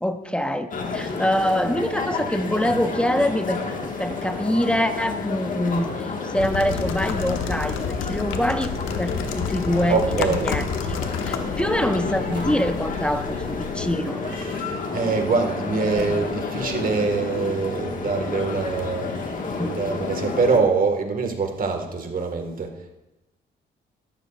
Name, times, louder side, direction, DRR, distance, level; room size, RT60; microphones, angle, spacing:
voice 1, 0.0-3.6 4.0-8.7 9.0-11.0 11.3-14.2 19.5-19.8, equal, 5° left, 9 dB, 0.7 m, -25 dB
sound 1, 0.7-20.6, left 4 dB, 45° left, 1.6 m, -30 dB
sound 2, 3.7-4.5 5.7-6.1 7.3-7.9 8.8-9.6 10.8-11.4 12.3-13.0 14.2-14.9 15.8-16.6, right 6 dB, 65° right, 1.0 m, -42 dB
sound 3, 6.4-13.9, left 7 dB, 85° left, 0.9 m, -31 dB
voice 2, 9.9-10.6 14.4-19.2 19.6-23.0, right 4 dB, 45° right, 4 dB, 1.7 m, -24 dB
13.5 x 12.0 x 2.4 m, 0.98 s
cardioid pair, 90°, 20 cm